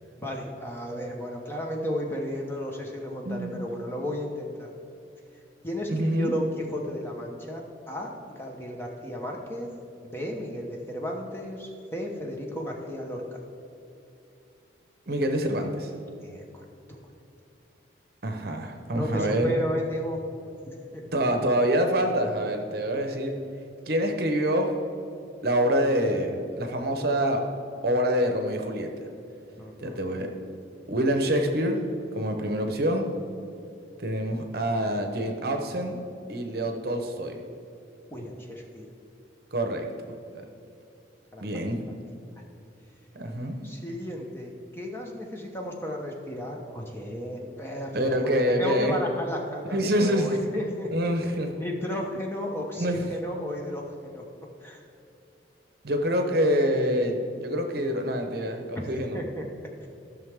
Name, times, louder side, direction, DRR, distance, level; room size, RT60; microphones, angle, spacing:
voice 1, 0.2-4.7 5.6-9.7 10.0-13.4 16.2-16.6 18.9-20.3 20.9-21.0 29.6-30.0 38.1-38.9 41.3-41.4 43.6-51.1 51.5-54.2 54.6-54.8 58.8-59.4 59.8-59.9, equal, 15° left, 0 dB, 1.1 m, -34 dB
voice 2, 3.2-3.6 5.9-6.3 15.1-15.9 18.2-19.5 21.1-23.3 23.9-24.7 25.4-27.4 27.8-28.9 29.8-30.3 30.9-31.8 32.1-33.1 34.0-36.0 36.3-37.4 39.5-39.9 40.3-40.4 41.4-41.8 43.1-43.6 47.9-49.0 49.7-50.3 50.9-51.6 52.7-53.1 55.8-59.2, equal, 55° right, 4 dB, 0.9 m, -26 dB
14.5 x 6.3 x 3.6 m, 2.7 s
head